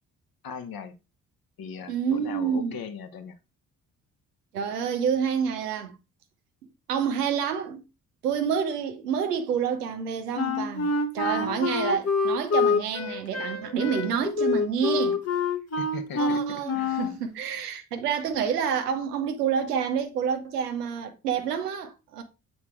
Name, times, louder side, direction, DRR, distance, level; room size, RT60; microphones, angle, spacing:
voice 1, 0.4-1.0 1.6-3.4 11.3-11.7 15.8-16.9, left 6 dB, 50° left, 1.3 m, -39 dB
voice 2, 1.9-2.7 4.5-6.0 6.9-7.8 8.2-15.2 16.2-22.2, right 7 dB, 80° right, 1.0 m, -28 dB
Wind instrument woodwind instrument, 10.4-17.2, left 4 dB, 30° left, 1.2 m, -26 dB
8.2 x 4.4 x 4.5 m
figure-of-eight pair, 40°, 47 cm